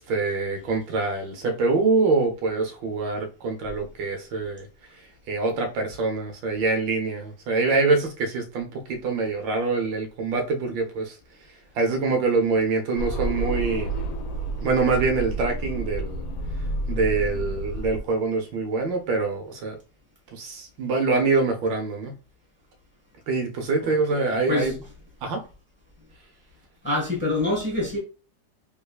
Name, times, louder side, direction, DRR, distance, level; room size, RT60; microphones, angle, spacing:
voice 1, 0.0-4.7 5.3-11.1 11.8-13.9 14.6-16.2 16.9-19.8 20.3-22.2 23.3-24.7 25.2-25.4, right 3 dB, 85° right, 1.5 m, -25 dB
sound 1, 13.0-18.0, right 2 dB, 65° left, 1.0 m, -29 dB
voice 2, 23.8-24.7 26.8-28.0, left 2 dB, 5° left, 1.1 m, -26 dB
3.5 x 3.2 x 2.3 m
omnidirectional pair, 2.0 m